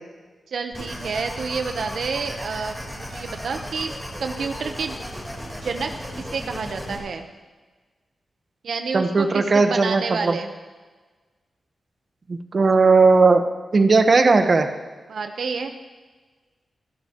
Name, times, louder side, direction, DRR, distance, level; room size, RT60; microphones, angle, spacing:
voice 1, 0.5-3.9 4.2-5.0 5.6-5.9 6.2-7.3 8.6-10.5 15.1-15.7, right 5 dB, 75° right, 6 dB, 0.9 m, -29 dB
sound 1, 0.7-7.0, equal, 5° left, 3.9 m, -35 dB
voice 2, 8.9-10.4 12.3-13.4 13.7-14.7, right 4 dB, 45° right, 7 dB, 1.1 m, -17 dB
26.5 x 12.0 x 3.0 m, 1.3 s
wide cardioid pair, 95°, 0 cm